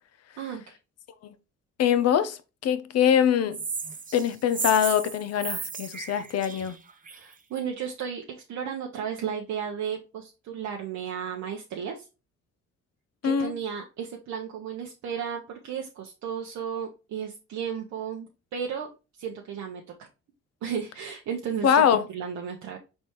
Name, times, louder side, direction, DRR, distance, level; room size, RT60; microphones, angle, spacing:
voice 1, 0.4-0.8 7.1-12.1 13.2-18.9 19.2-19.8 20.6-21.8 22.1-22.8, right 7 dB, 65° right, 0.7 m, -34 dB
voice 2, 1.8-3.6 4.1-6.8 13.2-13.5 21.6-22.0, left 8 dB, 55° left, 0.5 m, -23 dB
sound 1, 3.5-7.3, right 5 dB, 25° right, 0.6 m, -35 dB
4.4 x 3.3 x 2.9 m
cardioid pair, 90°, 30 cm